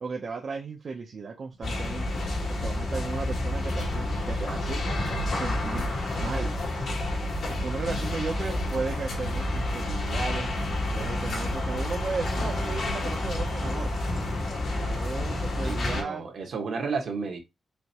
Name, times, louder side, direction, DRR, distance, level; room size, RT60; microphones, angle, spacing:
voice 1, 0.0-2.2 2.5-4.8 5.3-5.9 6.2-6.5 7.6-10.5 10.9-13.9 14.7-16.2, right 4 dB, 55° right, 0.7 m, -35 dB
sound 1, 1.6-16.0, left 1 dB, 75° left, 2.3 m, -29 dB
voice 2, 15.6-17.4, right 4 dB, 70° right, 1.3 m, -32 dB
5.0 x 3.3 x 2.9 m
wide cardioid pair, 135°, 0 cm